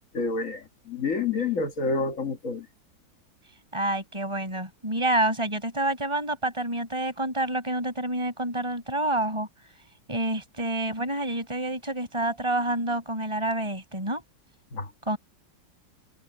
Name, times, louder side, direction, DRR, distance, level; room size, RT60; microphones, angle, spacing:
voice 1, 0.1-2.7 14.7-14.9, left 4 dB, 40° left, 1.9 m, -28 dB
voice 2, 3.7-9.5 10.1-14.2 15.0-15.2, right 1 dB, 15° right, 6.5 m, -28 dB
omnidirectional pair, 2.2 m